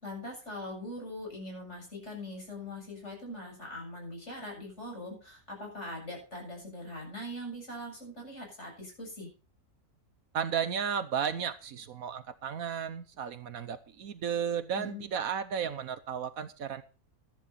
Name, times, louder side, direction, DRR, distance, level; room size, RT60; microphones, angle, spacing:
voice 1, 0.0-9.3 14.8-15.0, left 1 dB, 50° left, 1 dB, 7.9 m, -42 dB
voice 2, 10.3-16.8, right 7 dB, 70° right, 13 dB, 1.3 m, -34 dB
13.5 x 11.0 x 4.2 m, 0.34 s
omnidirectional pair, 1.6 m